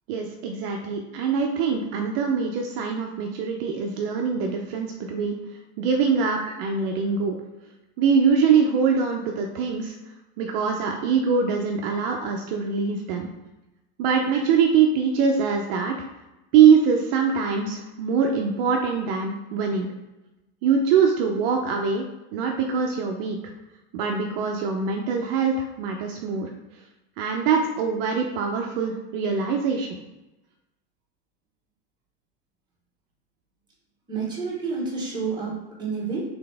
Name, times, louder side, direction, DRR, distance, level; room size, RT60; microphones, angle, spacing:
voice 1, 0.1-5.4 5.8-7.4 8.0-9.9 10.4-13.3 14.0-16.0 16.5-19.9 20.6-22.0 22.3-23.4 23.9-26.5 27.2-30.0, right 6 dB, 55° right, 2 dB, 0.5 m, -23 dB
voice 2, 34.1-36.3, right 4 dB, 10° right, -5 dB, 1.2 m, -30 dB
3.9 x 3.4 x 3.4 m, 1.0 s
supercardioid pair, 155°, 35 cm